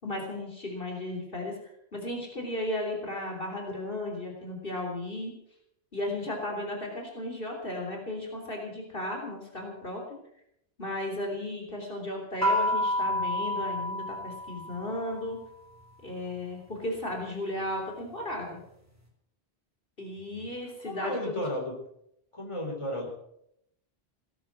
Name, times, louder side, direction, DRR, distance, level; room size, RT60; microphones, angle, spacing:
voice 1, 0.0-1.5 1.9-5.3 5.9-10.0 10.8-15.4 16.0-18.6 20.0-21.4, left 1 dB, 55° left, 1 dB, 3.8 m, -35 dB
sound 1, 12.4-15.1, left 1 dB, 15° right, 3.8 m, -29 dB
voice 2, 20.8-21.8 22.3-23.1, left 1 dB, 25° left, 0 dB, 4.0 m, -33 dB
18.5 x 10.0 x 7.5 m, 0.77 s
omnidirectional pair, 1.1 m